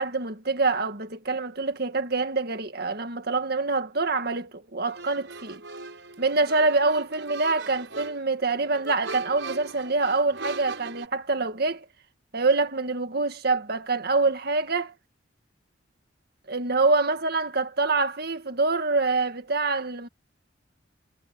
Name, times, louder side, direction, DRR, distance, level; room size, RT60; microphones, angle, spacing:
voice 1, 0.0-5.6 6.2-11.9 12.3-14.9 16.5-20.1, right 3 dB, 55° right, 1.9 m, -25 dB
sound 1, 4.9-11.1, right 3 dB, 70° right, 6.9 m, -40 dB
head